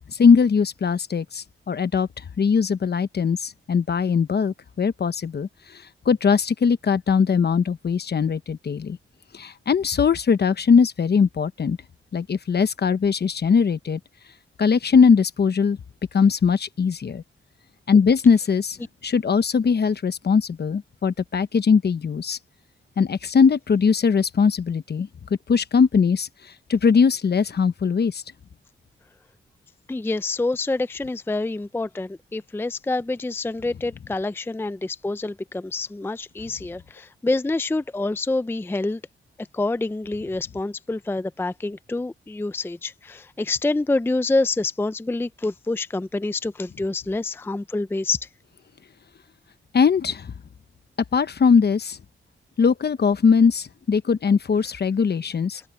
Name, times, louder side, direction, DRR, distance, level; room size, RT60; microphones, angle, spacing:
voice 1, 0.1-2.1 2.4-9.0 9.3-11.8 12.1-14.0 14.6-15.8 16.1-17.2 17.9-18.8 19.0-22.4 23.0-25.1 25.5-26.3 26.7-28.2 49.7-50.3 51.1-52.0 52.6-55.6, left 6 dB, 50° left, 1.0 m, -20 dB
voice 2, 29.9-39.0 39.4-48.3, left 2 dB, 10° left, 0.5 m, -27 dB
open air
wide cardioid pair, 105°, 21 cm